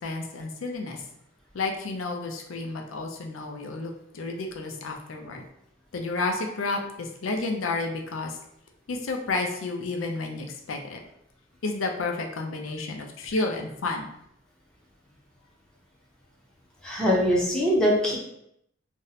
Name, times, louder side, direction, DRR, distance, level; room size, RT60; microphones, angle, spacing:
voice 1, 0.0-1.0 1.5-5.4 5.9-8.4 8.9-11.0 11.6-14.1, left 3 dB, 80° left, 3 dB, 0.5 m, -31 dB
voice 2, 16.8-18.2, equal, 5° left, -5 dB, 0.6 m, -22 dB
2.6 x 2.1 x 4.0 m, 0.76 s
head